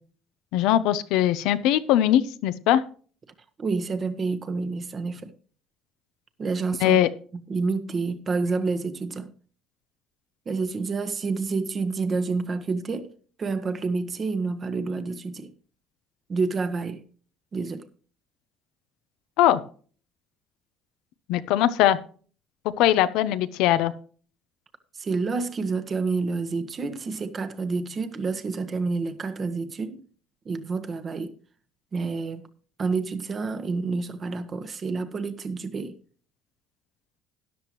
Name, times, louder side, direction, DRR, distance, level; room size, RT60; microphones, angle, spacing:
voice 1, 0.5-2.8 6.8-7.1 19.4-19.6 21.3-22.0 22.8-23.9, left 12 dB, 80° left, 0.8 m, -21 dB
voice 2, 3.6-5.3 6.4-7.0 7.3-9.3 10.4-13.1 13.4-15.5 16.3-17.0 17.5-17.9 24.9-30.0 30.4-31.3 31.9-32.5 32.8-36.0, right 4 dB, 35° right, 1.3 m, -28 dB
13.0 x 10.5 x 3.1 m
cardioid pair, 95°, 0 cm